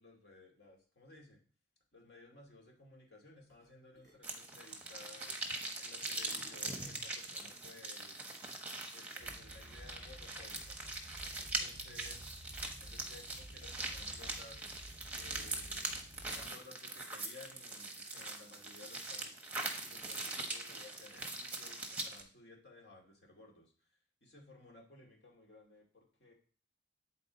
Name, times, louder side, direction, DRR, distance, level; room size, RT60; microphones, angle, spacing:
voice 1, 0.0-1.4 1.9-5.3 5.8-8.3 8.9-10.8 11.4-12.3 12.8-14.6 15.1-19.4 19.8-23.9 24.2-26.3, left 2 dB, 65° left, -1 dB, 2.3 m, -57 dB
sound 1, 3.5-3.7 3.9-5.7 6.0-7.2, right 1 dB, 15° left, 3.2 m, -63 dB
sound 2, 4.2-22.2, right 2 dB, 10° right, 0.8 m, -42 dB
sound 3, 9.2-16.4, right 1 dB, 35° left, 2.8 m, -53 dB
8.6 x 4.2 x 3.9 m, 0.42 s
head